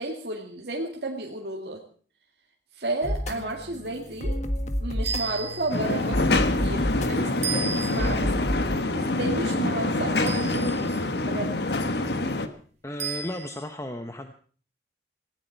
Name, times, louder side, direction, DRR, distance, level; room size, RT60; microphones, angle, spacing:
voice 1, 0.0-1.8 2.7-4.4 4.8-8.3 8.7-11.5, right 2 dB, 65° right, -1 dB, 2.2 m, -32 dB
sound 1, 3.0-8.8, equal, 40° left, 1.6 m, -30 dB
sound 2, 5.0-5.9 7.4-8.3 10.3-11.0 13.0-13.7, right 6 dB, 40° right, 3.4 m, -34 dB
sound 3, 5.7-12.5, left 2 dB, 70° left, 1.4 m, -26 dB
voice 2, 12.8-14.3, left 1 dB, 15° left, 6 dB, 0.9 m, -34 dB
18.5 x 16.5 x 4.6 m, 0.44 s
head